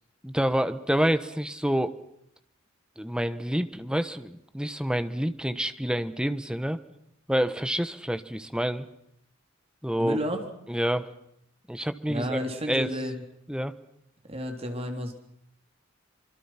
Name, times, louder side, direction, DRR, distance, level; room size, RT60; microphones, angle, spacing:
voice 1, 0.2-1.9 3.0-6.8 7.3-8.9 9.8-10.2 10.7-11.1 11.7-12.4 12.7-12.9 13.5-13.7, equal, 5° right, 11 dB, 1.3 m, -27 dB
voice 2, 10.0-10.4 12.1-13.2 14.2-15.1, equal, 30° right, 4 dB, 3.9 m, -31 dB
26.0 x 24.5 x 6.0 m, 0.74 s
head